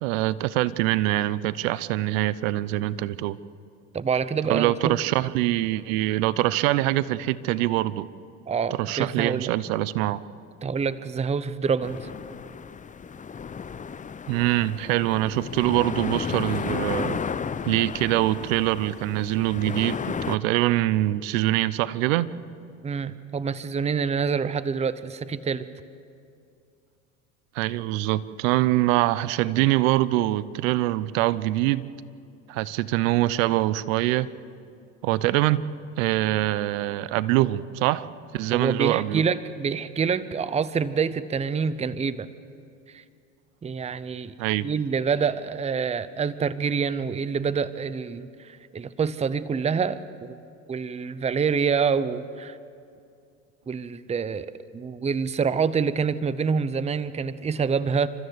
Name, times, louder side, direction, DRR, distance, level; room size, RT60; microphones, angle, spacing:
voice 1, 0.0-3.4 4.5-8.1 8.8-10.2 14.3-17.2 17.6-22.3 27.6-31.9 32.5-34.3 35.0-35.7 36.0-38.1 38.3-39.2 44.4-44.7, right 16 dB, 75° right, 18 dB, 0.8 m, -24 dB
voice 2, 3.9-4.9 8.5-9.5 10.6-12.0 22.8-25.7 38.5-42.3 42.9-43.0 43.6-44.3 44.6-50.4 50.7-52.6 53.7-54.5 54.7-58.1, right 6 dB, 15° right, 16 dB, 0.7 m, -26 dB
sound 1, 11.8-20.4, left 6 dB, 20° left, 0.7 m, -33 dB
29.5 x 13.0 x 8.1 m, 2.5 s
hypercardioid pair, 85°, 40 cm